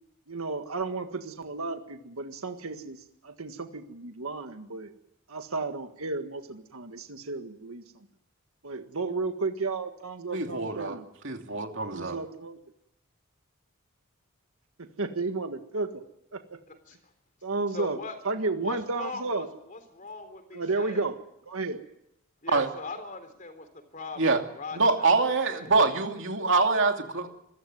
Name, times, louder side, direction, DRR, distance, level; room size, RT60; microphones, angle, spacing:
voice 1, 0.3-4.9 5.3-8.1 8.6-11.1 11.9-12.6 14.8-16.0 16.3-16.6 17.4-18.0 18.2-19.5 20.5-21.2 21.5-21.8, right 3 dB, 85° right, 7 dB, 1.7 m, -33 dB
voice 2, 10.3-11.0 11.2-12.2 22.5-22.7 24.2-24.4 24.7-27.3, right 3 dB, 60° right, 4 dB, 2.8 m, -25 dB
voice 3, 17.7-18.1 18.6-21.0 22.4-23.7 23.9-25.2 25.5-25.9, left 3 dB, 40° left, 9 dB, 3.8 m, -40 dB
25.5 x 15.0 x 9.4 m, 0.79 s
head